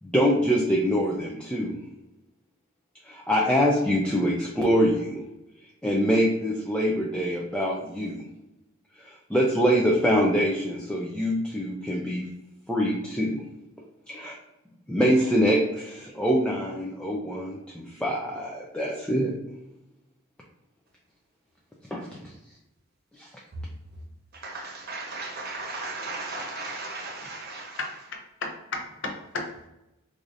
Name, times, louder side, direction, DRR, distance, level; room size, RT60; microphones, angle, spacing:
voice 1, 0.0-1.8 3.0-5.2 5.8-8.3 9.0-12.3 12.7-13.4 14.1-14.4 14.9-19.4 21.9-22.1 23.2-23.3, equal, 5° left, 0.4 m, -24 dB
voice 2, 24.3-27.8, right 3 dB, 50° right, 0.9 m, -36 dB
voice 3, 27.8-29.7, left 3 dB, 65° left, 0.7 m, -35 dB
4.7 x 2.5 x 2.6 m
head